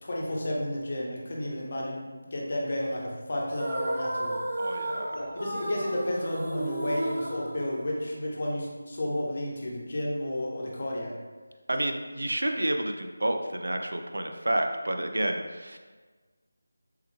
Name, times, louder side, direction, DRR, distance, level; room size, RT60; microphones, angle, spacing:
voice 1, 0.0-2.0 2.3-4.4 5.1-11.1, left 1 dB, 35° left, -2 dB, 0.5 m, -32 dB
sound 1, 3.5-8.3, right 1 dB, 25° right, 0.5 m, -33 dB
voice 2, 4.6-5.2 11.7-15.8, right 1 dB, 80° right, 5 dB, 0.3 m, -30 dB
3.4 x 2.2 x 3.0 m, 1.3 s
figure-of-eight pair, 175°, 0 cm